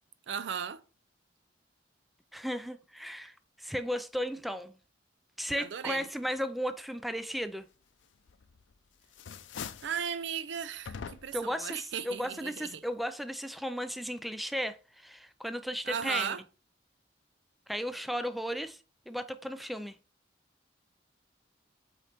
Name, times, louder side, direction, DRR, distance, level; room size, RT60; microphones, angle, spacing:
voice 1, 0.3-0.8 5.6-6.1 9.8-12.8 15.9-16.4, right 7 dB, 70° right, 0.5 m, -36 dB
voice 2, 2.3-4.7 5.4-7.6 11.3-16.4 17.7-18.8 19.1-20.0, equal, ahead, 0.3 m, -35 dB
sound 1, 8.3-8.7 9.0-10.0 10.8-11.5, left 6 dB, 85° left, 0.5 m, -42 dB
8.1 x 3.2 x 4.2 m
head